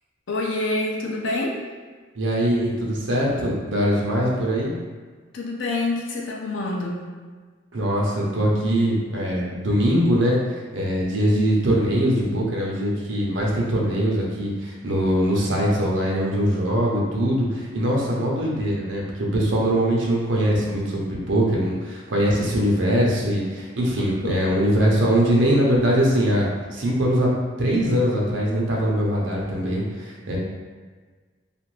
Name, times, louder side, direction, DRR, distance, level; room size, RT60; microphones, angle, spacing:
voice 1, 0.3-1.6 5.3-7.0 24.2-24.5, left 2 dB, 75° left, -1 dB, 0.5 m, -27 dB
voice 2, 2.2-4.7 7.7-27.3 27.6-30.4, equal, 75° right, -3 dB, 0.7 m, -22 dB
2.5 x 2.5 x 3.1 m, 1.4 s
head